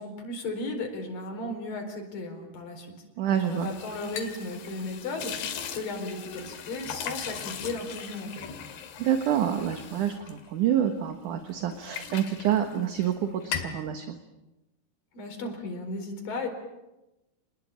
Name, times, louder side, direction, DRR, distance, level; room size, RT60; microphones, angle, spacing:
voice 1, 0.0-2.9 3.3-8.3 15.1-16.5, left 2 dB, 55° left, 3 dB, 6.0 m, -35 dB
voice 2, 3.2-3.7 9.0-14.2, right 10 dB, 60° right, 7 dB, 2.4 m, -27 dB
sound 1, 3.3-11.1 11.5-13.2 13.4-13.8, left 8 dB, 70° left, 4.1 m, -39 dB
29.5 x 20.5 x 8.8 m, 0.98 s
omnidirectional pair, 4.9 m